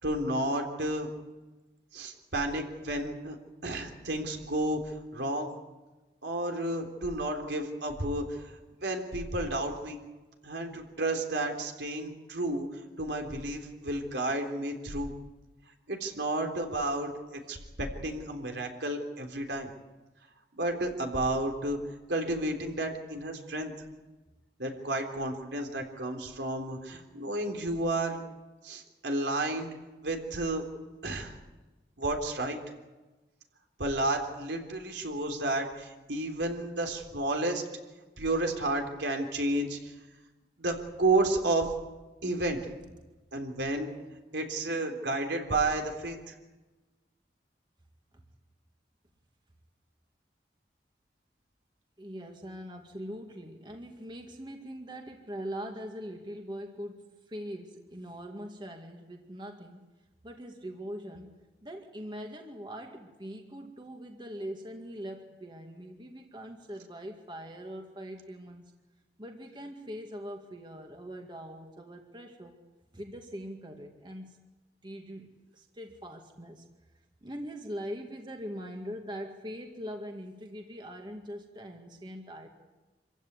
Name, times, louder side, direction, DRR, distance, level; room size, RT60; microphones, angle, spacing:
voice 1, 0.0-1.1 1.9-3.4 3.6-5.5 6.2-8.5 8.8-10.0 10.4-15.1 15.9-19.7 20.6-21.8 22.1-23.7 24.6-28.2 28.6-29.7 30.0-30.6 31.0-31.4 32.0-32.6 33.8-37.6 38.2-39.9 40.6-41.7 42.2-42.6 43.3-43.9 44.3-46.3, right 2 dB, 75° right, 3 dB, 3.7 m, -31 dB
voice 2, 52.0-59.8 60.2-61.3 61.6-68.7 69.2-72.6 72.9-74.5 74.8-76.7 77.2-82.5, equal, 25° right, 3 dB, 2.0 m, -42 dB
26.5 x 15.5 x 9.6 m, 1.2 s
head